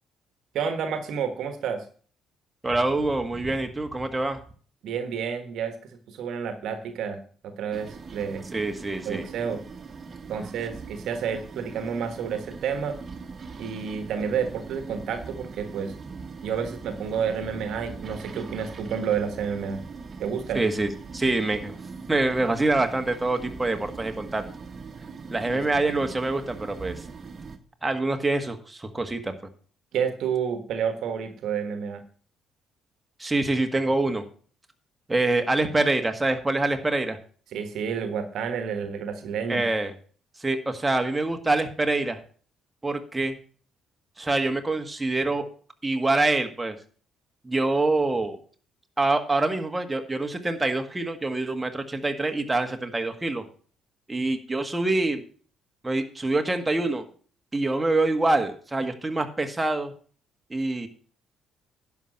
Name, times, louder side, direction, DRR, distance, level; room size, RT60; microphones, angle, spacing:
voice 1, 0.5-1.9 4.8-8.4 9.0-9.6 10.3-13.0 13.6-15.9 16.4-19.8 20.2-20.6 25.5-25.6 29.9-32.0 37.5-39.6, right 7 dB, 65° right, 8 dB, 1.4 m, -30 dB
voice 2, 2.6-4.4 8.5-9.3 20.5-21.7 22.1-24.4 25.3-27.0 27.8-29.3 33.2-34.2 35.1-37.2 39.5-39.9 40.4-42.2 42.8-43.4 44.2-45.5 45.8-46.7 47.4-48.4 49.0-53.4 54.1-55.2 55.8-57.0 57.5-59.9 60.5-60.9, right 2 dB, 20° right, 5 dB, 1.7 m, -25 dB
sound 1, 7.7-27.6, right 5 dB, 40° right, 1.5 m, -41 dB
11.0 x 5.9 x 6.5 m, 0.43 s
hypercardioid pair, 45°, 0 cm